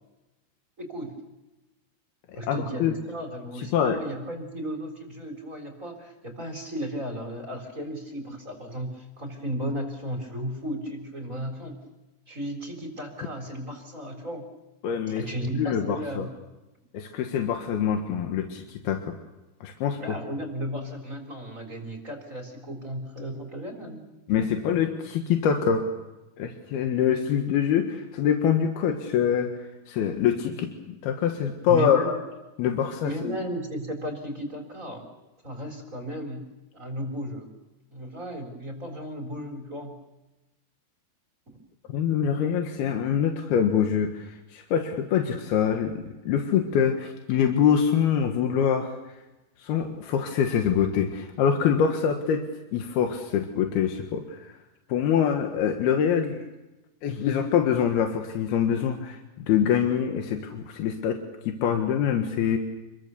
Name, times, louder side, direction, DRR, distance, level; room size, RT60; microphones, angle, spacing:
voice 1, 0.8-1.1 2.3-11.8 12.3-14.5 15.2-16.3 20.0-24.0 31.7-32.1 33.0-35.1 35.4-36.4 36.7-37.5 37.9-39.9 41.5-41.6, equal, 20° right, 4 dB, 3.7 m, -34 dB
voice 2, 2.4-3.0 3.6-4.0 14.8-15.2 15.5-16.3 16.9-19.2 19.6-20.2 24.3-25.9 26.4-32.1 32.6-33.4 41.9-49.0 49.6-54.6 54.9-56.4 57.0-61.2 61.5-62.6, left 8 dB, 90° left, 4 dB, 3.5 m, -25 dB
28.0 x 22.0 x 6.9 m, 1.0 s
omnidirectional pair, 4.3 m